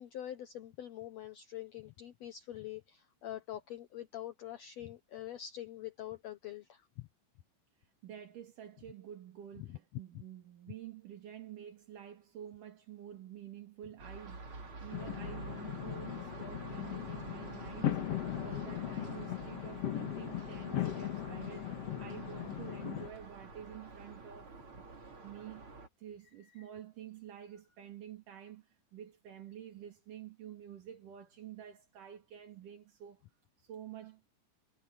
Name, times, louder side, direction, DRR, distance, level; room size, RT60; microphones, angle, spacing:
voice 1, 0.0-6.9 9.6-9.8 10.1-10.2 26.6-26.7, left 12 dB, 75° left, 1.5 m, -45 dB
voice 2, 7.8-24.9 25.2-25.7 26.0-33.2 33.6-34.3, right 10 dB, 60° right, 3.7 m, -49 dB
sound 1, 14.0-25.9, right 3 dB, 35° right, 4.2 m, -49 dB
sound 2, 14.9-23.1, left 11 dB, 55° left, 2.0 m, -38 dB
omnidirectional pair, 4.4 m